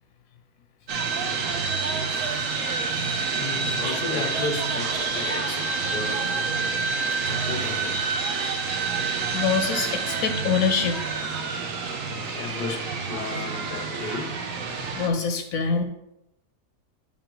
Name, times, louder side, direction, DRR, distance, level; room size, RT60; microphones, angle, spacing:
sound 1, 0.9-15.1, right 4 dB, 65° right, 1.1 m, -28 dB
voice 1, 3.3-6.3 7.2-8.0 12.0-14.4, left 4 dB, 40° left, 5 dB, 0.7 m, -34 dB
voice 2, 8.9-11.0 14.9-15.8, left 5 dB, 70° left, 6 dB, 0.9 m, -25 dB
7.1 x 5.4 x 3.0 m, 0.89 s
omnidirectional pair, 1.6 m